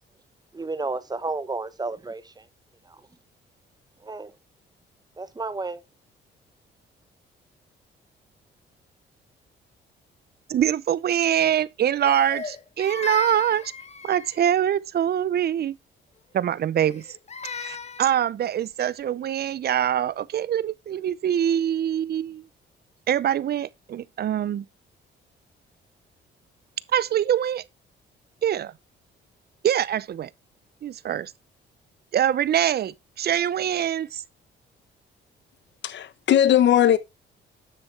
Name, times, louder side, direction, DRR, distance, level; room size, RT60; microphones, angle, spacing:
voice 1, 0.5-2.5 2.9-3.0 4.0-4.3 5.2-5.8, right 3 dB, 20° right, 1.1 m, -32 dB
voice 2, 10.5-13.7 14.0-15.8 16.3-17.1 17.5-22.4 23.1-24.6 26.9-27.6 28.4-28.7 29.6-30.3 30.8-31.3 32.1-34.2, right 10 dB, 55° right, 0.6 m, -24 dB
Crying sobbing, 12.0-14.6 16.8-18.2, left 5 dB, 35° left, 1.2 m, -36 dB
voice 3, 35.8-37.0, left 10 dB, 65° left, 1.0 m, -18 dB
9.9 x 7.4 x 3.3 m
cardioid pair, 90°, 20 cm